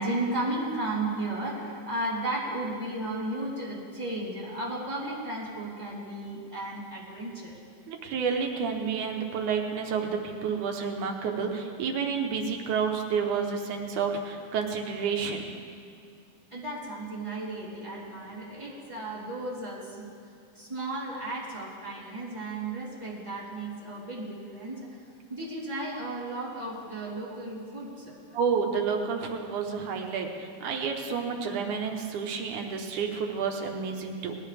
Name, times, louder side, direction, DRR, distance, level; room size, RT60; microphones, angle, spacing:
voice 1, 0.0-7.6 16.5-20.1 20.5-24.8 25.3-28.4, right 2 dB, 10° right, -7 dB, 3.1 m, -34 dB
voice 2, 7.9-15.5 28.3-34.4, right 6 dB, 80° right, 3 dB, 2.5 m, -30 dB
20.5 x 15.5 x 3.4 m, 2.3 s
omnidirectional pair, 3.6 m